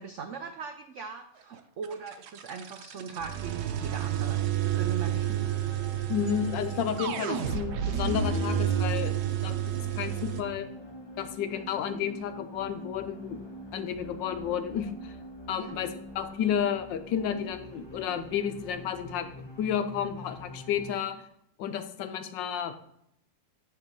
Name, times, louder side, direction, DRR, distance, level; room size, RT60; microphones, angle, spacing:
voice 1, 0.0-5.5 15.5-15.7, right 6 dB, 85° right, 6 dB, 0.6 m, -40 dB
sound 1, 1.8-10.4, right 9 dB, 65° right, 1.1 m, -30 dB
sound 2, 4.6-21.0, equal, 20° left, 0.7 m, -45 dB
voice 2, 6.1-9.1 9.4-10.7 11.2-13.4 13.7-15.1 15.5-19.3 19.6-21.2 21.6-22.7, left 8 dB, 75° left, 9 dB, 1.4 m, -31 dB
9.9 x 3.5 x 5.3 m, 0.74 s
omnidirectional pair, 2.0 m